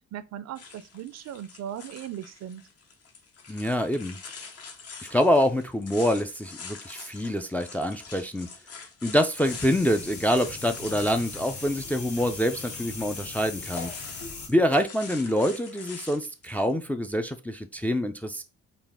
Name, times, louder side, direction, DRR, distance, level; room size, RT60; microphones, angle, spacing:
voice 1, 0.1-2.6, right 10 dB, 60° right, 0.5 m, -38 dB
sound 1, 0.5-16.7, left 5 dB, 50° left, 0.9 m, -45 dB
voice 2, 3.5-4.2 5.1-8.5 9.0-13.9 14.5-18.4, equal, 5° left, 0.3 m, -26 dB
sound 2, 9.4-14.5, left 4 dB, 75° left, 1.3 m, -39 dB
4.0 x 2.4 x 3.5 m
cardioid pair, 90°, 30 cm